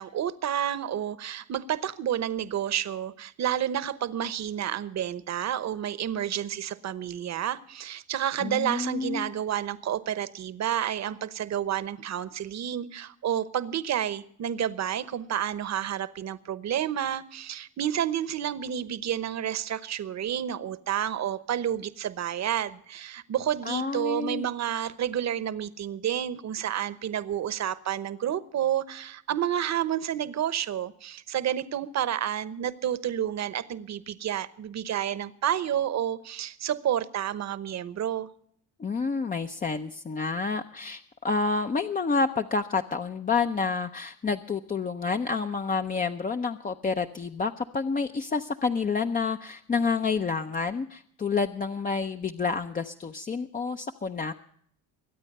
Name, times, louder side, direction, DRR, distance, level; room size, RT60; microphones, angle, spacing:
voice 1, 0.0-38.3, right 10 dB, 40° right, 1.0 m, -30 dB
voice 2, 8.4-9.3 23.6-24.5 38.8-54.3, left 4 dB, 20° left, 0.6 m, -29 dB
23.0 x 8.9 x 5.4 m
supercardioid pair, 90°, 40 cm